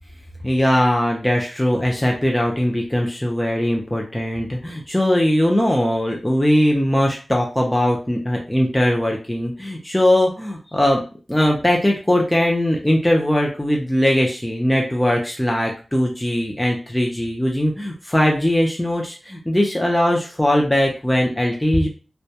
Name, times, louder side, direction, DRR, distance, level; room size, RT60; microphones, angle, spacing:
voice 1, 0.4-11.0 11.3-21.9, left 1 dB, 10° left, -1 dB, 0.4 m, -20 dB
2.2 x 2.1 x 2.7 m, 0.35 s
wide cardioid pair, 85°, 0 cm